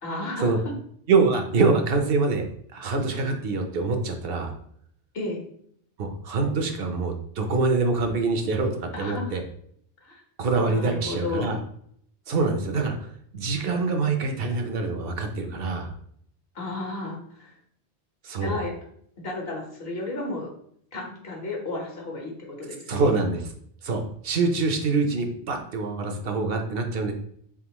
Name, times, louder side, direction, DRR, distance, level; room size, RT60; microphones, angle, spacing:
voice 1, 0.0-0.5 5.1-5.4 8.9-9.4 10.0-10.2 10.6-11.6 16.5-17.6 18.4-18.7 19.2-20.5 20.9-23.2, left 2 dB, 65° left, -1 dB, 1.3 m, -33 dB
voice 2, 1.1-2.5 2.7-4.5 6.0-9.4 10.4-11.6 12.3-15.9 18.2-18.6 22.9-23.5 23.8-27.1, right 3 dB, 65° right, 5 dB, 0.8 m, -25 dB
3.8 x 3.6 x 2.9 m, 0.65 s
omnidirectional pair, 1.1 m